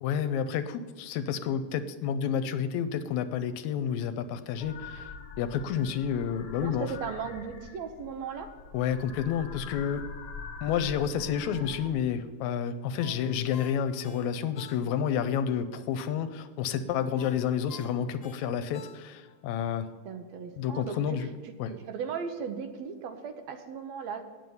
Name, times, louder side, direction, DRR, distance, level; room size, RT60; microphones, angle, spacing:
voice 1, 0.0-5.1 5.4-6.9 8.7-10.1 10.6-19.9 20.6-21.3 21.6-21.7, left 8 dB, 80° left, 11 dB, 2.0 m, -30 dB
sound 1, 4.6-11.9, left 4 dB, 65° left, 1.0 m, -44 dB
voice 2, 6.6-8.5 20.1-24.3, right 6 dB, 75° right, 7 dB, 2.0 m, -37 dB
Ringtone, 13.0-15.2 15.6-15.7 17.2-19.4 19.8-19.9, left 5 dB, 40° left, 1.8 m, -50 dB
9.4 x 7.7 x 6.9 m, 1.4 s
omnidirectional pair, 3.3 m